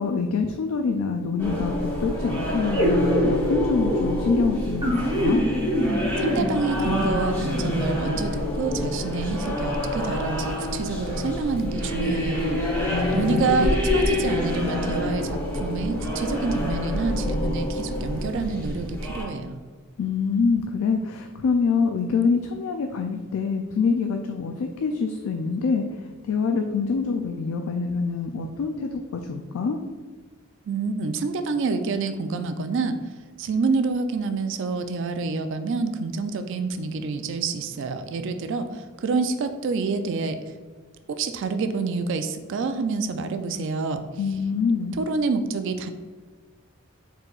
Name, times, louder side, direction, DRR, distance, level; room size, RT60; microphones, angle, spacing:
voice 1, 0.0-5.5 12.8-13.7 20.0-29.8 44.2-45.0, left 5 dB, 75° left, 5 dB, 0.3 m, -25 dB
sound 1, 1.4-19.2, left 1 dB, 10° left, 1.0 m, -27 dB
sound 2, 2.7-8.2, equal, 20° right, 0.9 m, -25 dB
voice 2, 6.2-12.6 13.1-19.6 30.7-33.0 33.4-40.4 41.1-44.0 45.0-45.9, right 4 dB, 60° right, 9 dB, 0.3 m, -27 dB
4.5 x 3.9 x 2.3 m, 1.5 s
head